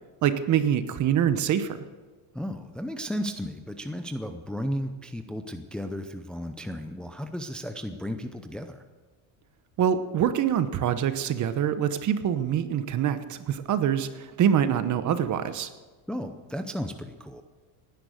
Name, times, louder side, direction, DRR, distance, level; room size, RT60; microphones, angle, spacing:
voice 1, 0.2-1.8 9.8-15.7, right 9 dB, 40° right, 12 dB, 1.0 m, -25 dB
voice 2, 2.3-8.8 16.1-17.4, equal, ahead, 7 dB, 0.6 m, -34 dB
18.0 x 10.5 x 6.5 m, 1.3 s
cardioid pair, 140°, 44 cm